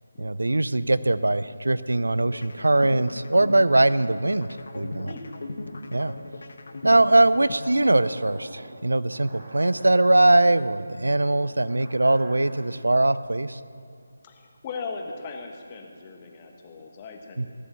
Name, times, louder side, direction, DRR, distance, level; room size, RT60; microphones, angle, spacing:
voice 1, 0.2-4.5 4.7-5.1 5.9-6.1 6.8-13.6 17.4-17.5, right 2 dB, 80° right, 16 dB, 0.4 m, -21 dB
sound 1, 2.2-8.3, left 2 dB, 60° left, 1.1 m, -38 dB
sound 2, 7.6-12.8, right 1 dB, 45° right, 2.7 m, -45 dB
voice 2, 14.2-17.5, left 4 dB, 25° left, 2 dB, 1.3 m, -38 dB
16.5 x 6.9 x 7.4 m, 2.3 s
figure-of-eight pair, 160°, 0 cm